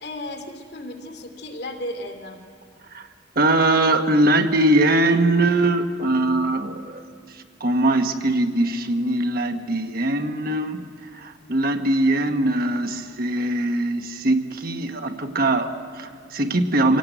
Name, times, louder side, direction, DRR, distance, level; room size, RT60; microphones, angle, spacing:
voice 1, 0.0-2.4, left 1 dB, 55° left, 4 dB, 2.8 m, -34 dB
voice 2, 3.3-7.0 7.3-10.8 11.1-17.0, right 2 dB, 50° right, 6 dB, 1.3 m, -21 dB
26.5 x 17.5 x 9.2 m, 2.2 s
head